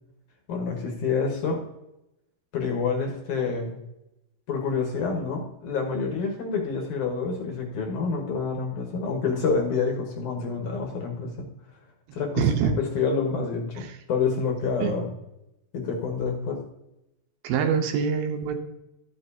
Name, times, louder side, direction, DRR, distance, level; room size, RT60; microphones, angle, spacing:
voice 1, 0.5-1.6 2.5-3.8 4.5-11.5 12.1-15.1 15.7-16.6, left 5 dB, 65° left, 2 dB, 2.4 m, -28 dB
voice 2, 12.4-12.7 13.9-14.0 14.8-15.0 17.4-18.6, right 7 dB, 80° right, 5 dB, 2.7 m, -24 dB
12.5 x 6.7 x 2.8 m, 0.88 s
omnidirectional pair, 4.3 m